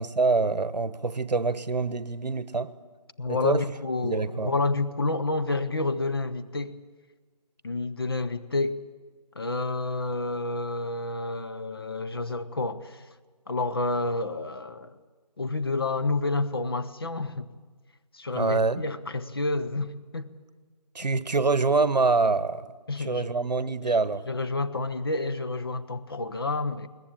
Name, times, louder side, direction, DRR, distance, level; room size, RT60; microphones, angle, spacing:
voice 1, 0.0-2.7 3.3-3.6 4.0-4.5 18.3-18.8 20.9-22.7 23.0-24.2, right 3 dB, 75° right, 1.2 m, -25 dB
voice 2, 3.2-6.8 7.6-8.8 9.4-13.0 13.5-15.0 15.4-17.5 18.1-20.3 21.0-21.1 22.9-23.3 23.8-24.0 24.3-26.9, left 3 dB, 35° left, 0.8 m, -29 dB
22.0 x 19.0 x 8.8 m
figure-of-eight pair, 170°, 21 cm